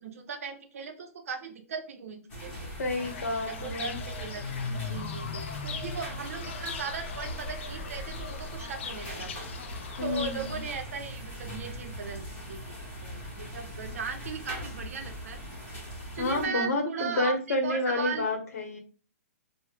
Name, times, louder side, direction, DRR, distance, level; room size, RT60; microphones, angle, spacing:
voice 1, 0.0-2.7 3.5-9.5 10.0-12.6 13.0-15.4 16.1-18.3, right 6 dB, 70° right, 7 dB, 0.6 m, -38 dB
sound 1, 2.3-16.5, equal, 15° left, 0.8 m, -40 dB
voice 2, 2.8-4.0 10.0-10.6 16.2-18.8, left 2 dB, 75° left, 5 dB, 0.9 m, -30 dB
Fowl / Bird, 3.0-10.8, left 6 dB, 50° left, 0.4 m, -39 dB
3.0 x 2.0 x 3.3 m, 0.38 s
hypercardioid pair, 165°, 8 cm